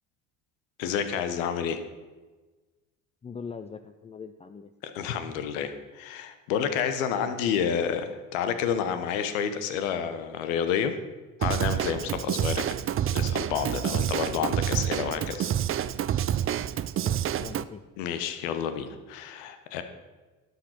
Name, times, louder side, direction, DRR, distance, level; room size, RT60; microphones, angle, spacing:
voice 1, 0.8-1.8 4.8-11.0 11.4-12.6 13.1-15.5 18.0-19.8, left 8 dB, 85° left, 9 dB, 1.2 m, -29 dB
voice 2, 3.2-4.7 17.0-17.8, left 5 dB, 15° left, 8 dB, 0.5 m, -41 dB
Drum kit / Drum, 11.4-17.6, right 10 dB, 35° right, 0.5 m, -28 dB
11.5 x 6.7 x 5.8 m, 1.3 s
supercardioid pair, 80°, 38 cm